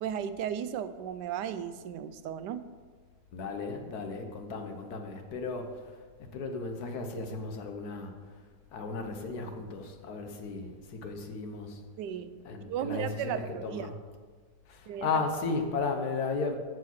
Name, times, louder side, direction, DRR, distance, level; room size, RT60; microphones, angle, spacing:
voice 1, 0.0-2.7 12.0-14.0 14.9-15.2, right 9 dB, 85° right, 12 dB, 1.2 m, -35 dB
voice 2, 3.3-5.7 6.3-8.1 8.7-11.8 12.4-13.9 14.7-16.6, left 4 dB, 65° left, 5 dB, 1.5 m, -35 dB
14.0 x 4.8 x 6.0 m, 1.5 s
omnidirectional pair, 1.8 m